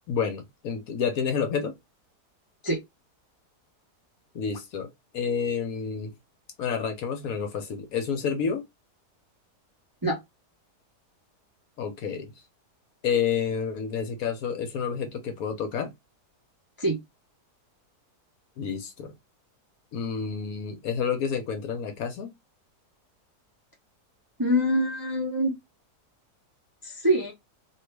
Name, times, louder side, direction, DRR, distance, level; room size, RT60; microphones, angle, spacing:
voice 1, 0.1-1.7 4.3-6.1 6.6-8.6 11.8-12.3 13.0-15.9 18.6-19.1 19.9-22.3, left 6 dB, 65° left, 1.0 m, -29 dB
voice 2, 24.4-25.5 27.0-27.3, equal, 20° right, 0.6 m, -24 dB
3.0 x 2.7 x 3.2 m
omnidirectional pair, 1.7 m